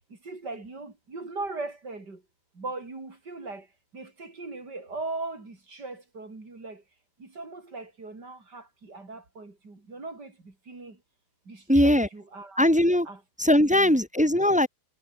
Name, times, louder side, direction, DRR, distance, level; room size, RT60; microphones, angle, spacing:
voice 1, 0.3-2.2 2.6-3.6 3.9-6.8 7.2-10.3 10.7-11.0 11.5-12.7 13.1-13.2 13.6-13.9, right 3 dB, 85° right, 5.6 m, -39 dB
voice 2, 11.7-12.1 12.6-13.1 13.4-14.7, left 1 dB, 5° right, 1.0 m, -20 dB
omnidirectional pair, 1.8 m